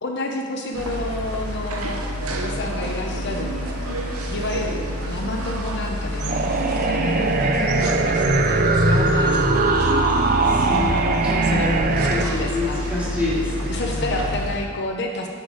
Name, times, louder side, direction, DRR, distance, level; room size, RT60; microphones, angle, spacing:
voice 1, 0.0-2.0 2.3-3.6 4.3-9.6 11.4-12.8 13.7-15.3, left 1 dB, 50° left, 1 dB, 0.7 m, -30 dB
sound 1, 0.7-14.6, right 2 dB, 90° right, 0.8 m, -33 dB
sound 2, 0.8-14.6, left 1 dB, 80° left, 1.2 m, -30 dB
sound 3, 6.3-12.2, right 3 dB, 40° right, 0.5 m, -20 dB
voice 2, 10.4-14.2, left 2 dB, 5° right, -9 dB, 2.4 m, -28 dB
9.7 x 6.6 x 4.0 m, 2.1 s
head